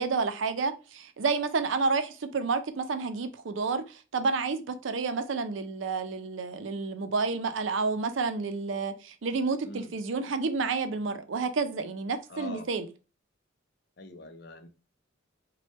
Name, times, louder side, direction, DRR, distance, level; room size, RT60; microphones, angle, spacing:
voice 1, 0.0-12.9, right 4 dB, 70° right, 0.5 m, -30 dB
voice 2, 9.6-10.0 12.3-12.7 14.0-14.7, left 2 dB, 55° left, 0.5 m, -43 dB
3.3 x 2.2 x 4.0 m
head